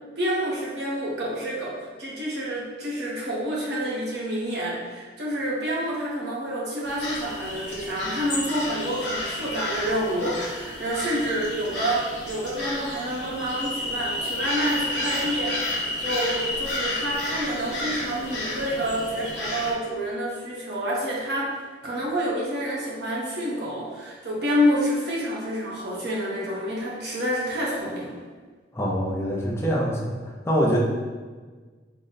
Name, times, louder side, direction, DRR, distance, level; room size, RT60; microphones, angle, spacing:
voice 1, 0.2-21.5 21.8-28.1, equal, 60° right, -5 dB, 1.0 m, -28 dB
sound 1, 6.8-19.7, left 1 dB, 65° left, 0.9 m, -31 dB
voice 2, 28.7-30.8, equal, 15° left, -4 dB, 0.4 m, -25 dB
3.8 x 2.1 x 3.9 m, 1.4 s
head